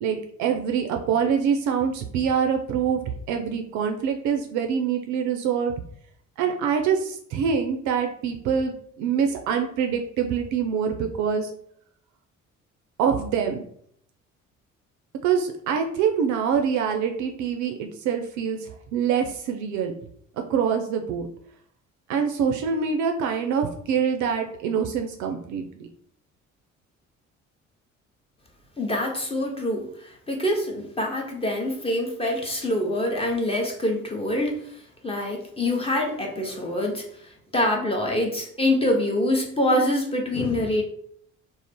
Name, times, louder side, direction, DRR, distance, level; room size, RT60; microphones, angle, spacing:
voice 1, 0.0-3.0 3.3-5.7 6.4-11.5 13.0-13.6 15.2-19.9 20.5-21.3 22.1-25.9, right 7 dB, 50° right, 4 dB, 0.4 m, -25 dB
voice 2, 28.8-34.6 35.0-37.0 37.5-40.8, left 1 dB, 15° left, 0 dB, 0.7 m, -25 dB
2.4 x 2.0 x 3.5 m, 0.64 s
figure-of-eight pair, 50°, 40 cm